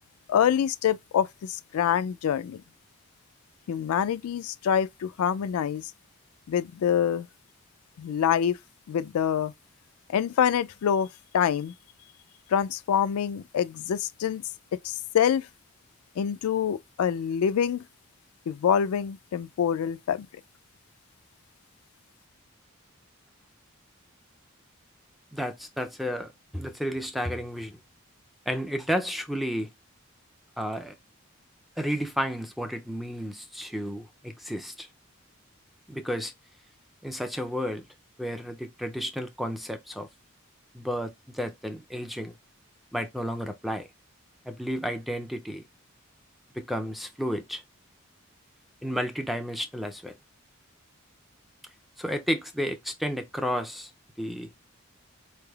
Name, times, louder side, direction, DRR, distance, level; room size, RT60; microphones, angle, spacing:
voice 1, 0.3-1.3 1.7-2.6 3.7-5.8 6.5-7.3 8.0-8.6 8.9-9.5 10.1-11.1 11.3-11.7 12.5-14.4 15.1-15.4 16.2-17.8 18.5-20.2, left 8 dB, 85° left, 0.3 m, -25 dB
voice 2, 25.3-27.8 28.5-29.7 30.6-31.0 31.8-34.9 35.9-36.3 37.0-37.9 38.2-40.1 40.7-42.3 42.9-43.9 44.5-45.7 46.5-47.6 48.8-50.2 52.0-53.9 54.2-54.5, equal, ahead, 0.3 m, -32 dB
4.5 x 3.2 x 2.3 m
head